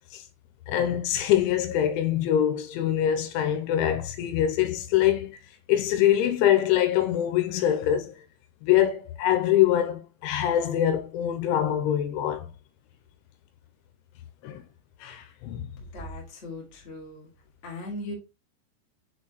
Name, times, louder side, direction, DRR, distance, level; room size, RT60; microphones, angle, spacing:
voice 1, 0.7-5.4 5.7-8.1 8.6-12.5 14.4-14.6 15.0-15.7, left 11 dB, 85° left, 3.1 m, -24 dB
voice 2, 15.8-17.3 17.6-18.1, left 1 dB, 30° left, 1.3 m, -38 dB
6.9 x 4.4 x 3.1 m
omnidirectional pair, 5.5 m